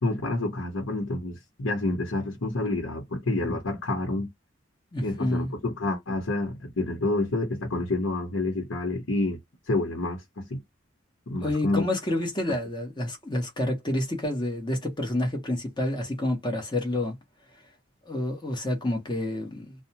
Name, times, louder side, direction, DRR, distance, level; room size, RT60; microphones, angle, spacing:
voice 1, 0.0-4.3 5.0-9.4 9.7-10.6 11.3-11.8, left 2 dB, 85° left, 0.9 m, -28 dB
voice 2, 4.9-5.5 11.4-17.1 18.1-19.7, left 1 dB, 25° left, 1.1 m, -28 dB
2.6 x 2.2 x 2.8 m
head